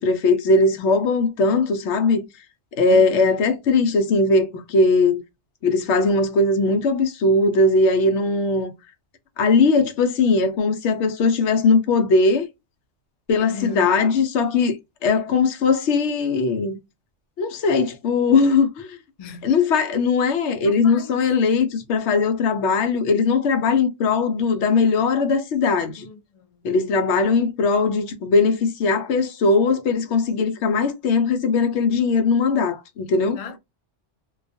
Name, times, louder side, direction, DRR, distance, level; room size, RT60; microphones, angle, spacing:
voice 1, 0.0-2.3 2.8-5.2 5.6-8.7 9.4-12.5 13.3-14.8 15.0-16.8 17.4-19.0 19.4-26.1 26.6-33.4, left 3 dB, 70° left, 0.8 m, -19 dB
voice 2, 2.9-3.4 13.4-13.9 19.2-19.5 20.6-21.1 26.0-26.7 33.4-33.6, left 4 dB, 55° left, 0.4 m, -36 dB
2.3 x 2.2 x 2.6 m
omnidirectional pair, 1.2 m